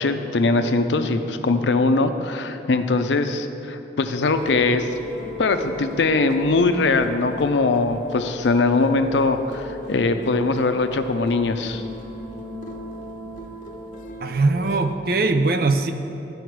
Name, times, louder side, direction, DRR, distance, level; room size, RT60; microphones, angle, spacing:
voice 1, 0.0-4.9 5.4-11.8, left 3 dB, 85° left, 8 dB, 0.5 m, -21 dB
sound 1, 4.2-14.8, left 2 dB, 45° left, 0.7 m, -37 dB
voice 2, 14.2-15.9, right 3 dB, 55° right, 8 dB, 0.5 m, -21 dB
13.0 x 5.0 x 4.6 m, 2.9 s
head